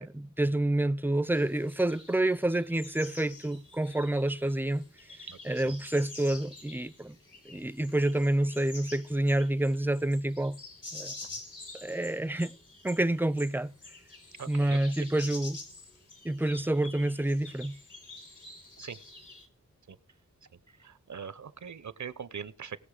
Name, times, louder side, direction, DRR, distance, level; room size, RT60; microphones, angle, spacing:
voice 1, 0.0-4.8 5.4-7.2 7.5-10.6 10.9-11.1 11.8-12.5 12.8-13.7 14.5-15.6 16.2-17.8, right 1 dB, 5° right, 0.5 m, -28 dB
sound 1, 1.3-19.5, left 2 dB, 75° left, 3.8 m, -48 dB
voice 2, 14.4-14.8 18.8-19.0 19.9-20.0 20.8-22.8, right 7 dB, 70° right, 0.8 m, -41 dB
18.5 x 6.7 x 4.9 m
wide cardioid pair, 60°, 31 cm